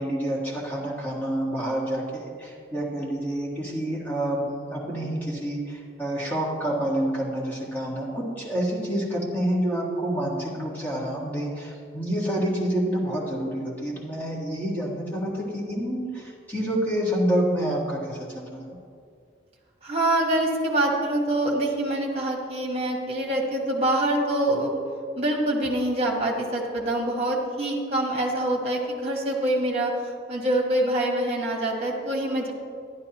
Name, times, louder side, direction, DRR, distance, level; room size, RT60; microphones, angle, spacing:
voice 1, 0.0-18.8, right 1 dB, 10° left, -5 dB, 1.6 m, -28 dB
voice 2, 19.8-24.8 25.1-29.9 30.3-32.5, right 1 dB, 35° right, 0 dB, 1.4 m, -25 dB
11.0 x 11.0 x 3.0 m, 2.3 s
head